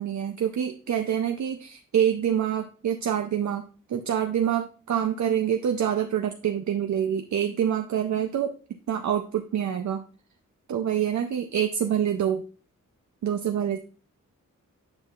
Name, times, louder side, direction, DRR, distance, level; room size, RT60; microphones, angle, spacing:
voice 1, 0.0-3.6 3.9-8.5 8.9-10.0 10.7-12.4 13.2-13.8, right 9 dB, 65° right, 6 dB, 0.5 m, -26 dB
8.9 x 5.3 x 2.4 m, 0.38 s
wide cardioid pair, 80°, 32 cm